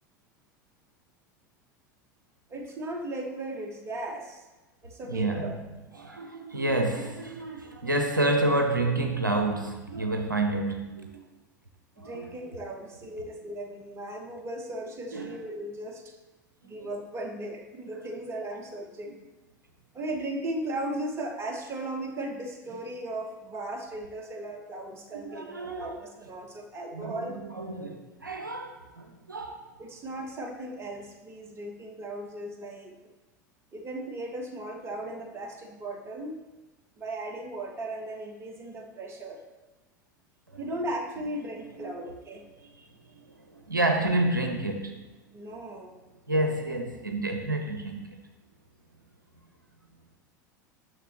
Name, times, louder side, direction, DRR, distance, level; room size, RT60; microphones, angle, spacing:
voice 1, 2.5-4.5 4.8-5.6 12.0-16.1 16.6-19.1 19.9-27.4 29.8-32.9 33.7-36.4 37.0-39.4 40.6-42.9 45.3-46.0, right 1 dB, 25° right, 3 dB, 1.3 m, -37 dB
voice 2, 5.1-5.6 5.9-11.2 12.0-12.3 15.1-15.4 16.6-16.9 25.2-26.0 26.9-29.7 40.5-40.7 41.7-41.9 43.5-45.1 46.3-48.2, right 2 dB, 85° right, 5 dB, 0.7 m, -29 dB
9.8 x 6.4 x 3.1 m, 1.2 s
figure-of-eight pair, 80°, 10 cm